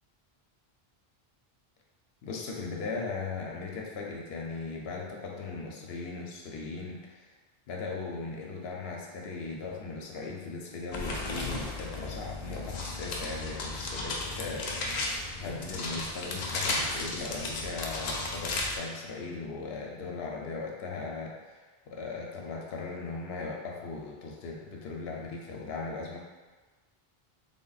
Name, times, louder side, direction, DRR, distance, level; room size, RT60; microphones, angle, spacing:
voice 1, 2.2-7.3 7.7-14.8 15.4-26.2, left 4 dB, 80° left, -1 dB, 0.9 m, -38 dB
sound 1, 10.9-18.8, left 2 dB, 55° left, 0.5 m, -34 dB
3.5 x 2.1 x 3.9 m, 1.3 s
omnidirectional pair, 1.0 m